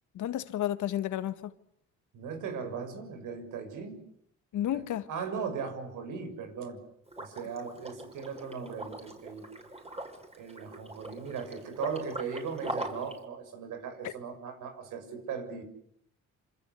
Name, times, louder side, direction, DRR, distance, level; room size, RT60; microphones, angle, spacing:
voice 1, 0.2-1.5 4.5-5.1 14.0-14.1, left 12 dB, 80° left, 1.8 m, -31 dB
voice 2, 2.1-4.0 4.7-6.8 7.2-9.4 10.4-15.6, right 6 dB, 85° right, 6.9 m, -38 dB
Liquid, 7.1-13.2, right 1 dB, 20° right, 6.4 m, -41 dB
27.0 x 26.0 x 8.3 m
cardioid pair, 90°, 30 cm